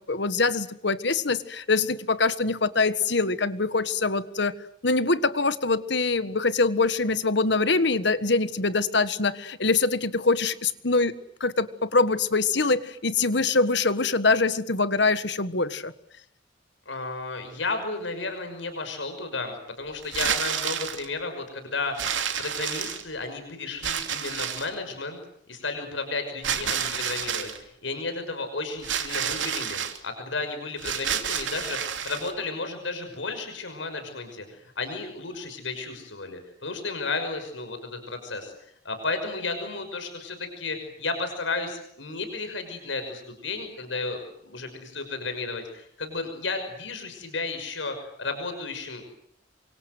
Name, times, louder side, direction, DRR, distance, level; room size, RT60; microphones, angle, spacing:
voice 1, 0.1-4.5 4.8-11.1 11.4-15.9, left 3 dB, 65° left, 13 dB, 1.6 m, -24 dB
voice 2, 16.9-22.1 22.4-25.2 25.5-44.2 44.4-49.0, left 3 dB, 80° left, 7 dB, 5.9 m, -33 dB
sound 1, 20.0-21.1 22.0-23.2 23.8-24.8 26.4-27.6 28.8-30.0 30.8-32.3, right 8 dB, 80° right, 2.9 m, -29 dB
28.0 x 25.0 x 8.0 m, 0.70 s
head